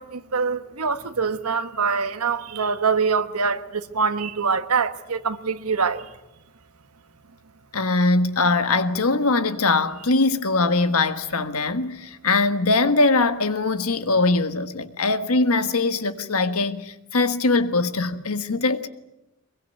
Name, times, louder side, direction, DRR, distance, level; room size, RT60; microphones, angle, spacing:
voice 1, 0.0-6.1, right 5 dB, 90° right, 1.4 m, -24 dB
voice 2, 7.7-18.9, left 3 dB, 80° left, 1.5 m, -21 dB
23.5 x 22.5 x 9.3 m
head